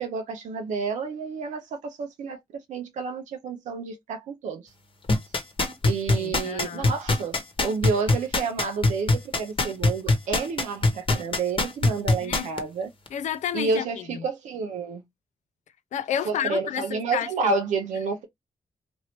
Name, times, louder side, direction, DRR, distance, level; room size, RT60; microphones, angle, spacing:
voice 1, 0.0-4.7 5.8-12.9 13.5-15.0 16.2-18.3, right 4 dB, 85° right, 0.6 m, -30 dB
sound 1, 5.1-12.6 13.1-13.2, left 2 dB, 45° left, 0.9 m, -21 dB
voice 2, 6.1-6.9 12.2-12.5 13.1-13.9 15.9-17.5, left 9 dB, 75° left, 0.4 m, -30 dB
3.0 x 2.6 x 2.9 m
supercardioid pair, 50°, 12 cm